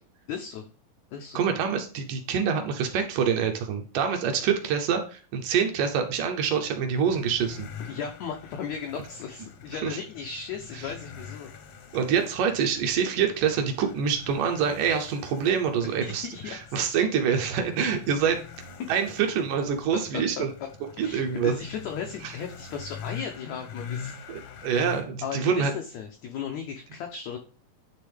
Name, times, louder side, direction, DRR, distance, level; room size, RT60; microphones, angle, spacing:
voice 1, 0.3-0.7 1.1-1.4 7.8-11.5 15.7-16.9 19.9-20.0 20.4-20.5 21.0-24.2 25.2-27.4, left 7 dB, 90° left, 3 dB, 1.5 m, -36 dB
voice 2, 1.4-7.7 9.8-10.0 11.9-18.4 18.9-20.5 21.0-21.6 22.2-22.3 24.3-25.7, right 7 dB, 75° right, 5 dB, 2.1 m, -26 dB
sound 1, 6.5-25.0, left 7 dB, 70° left, 1.5 m, -44 dB
10.0 x 3.5 x 3.4 m, 0.38 s
omnidirectional pair, 4.1 m